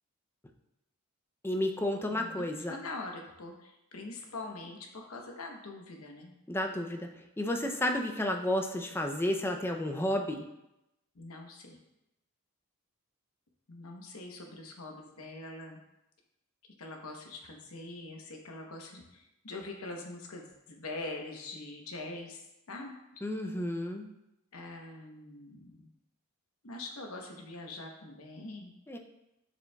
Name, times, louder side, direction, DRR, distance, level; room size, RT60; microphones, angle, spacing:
voice 1, 1.4-2.8 6.5-7.1 7.4-10.4 23.2-24.1 28.9-29.0, left 1 dB, 10° left, 3 dB, 0.5 m, -31 dB
voice 2, 2.1-6.3 11.1-11.8 13.7-15.8 16.8-22.4 22.7-23.2 24.5-25.9 26.6-28.7, left 2 dB, 70° left, 2 dB, 1.0 m, -43 dB
6.9 x 6.0 x 2.3 m, 0.89 s
head